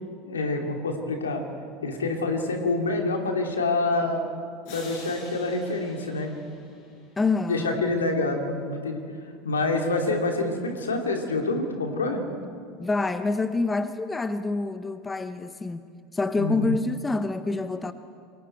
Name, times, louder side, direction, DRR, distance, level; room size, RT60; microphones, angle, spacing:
voice 1, 0.2-1.4 1.8-4.2 4.7-6.3 7.5-9.0 9.4-12.2 16.4-16.8, left 2 dB, 80° left, 2 dB, 2.7 m, -27 dB
sound 1, 4.6-7.3, left 3 dB, 60° left, 7.9 m, -46 dB
voice 2, 7.2-7.8 12.8-15.8 16.1-17.9, left 3 dB, 15° left, 11 dB, 1.0 m, -27 dB
28.0 x 23.5 x 4.5 m, 2.3 s
figure-of-eight pair, 75°, 0 cm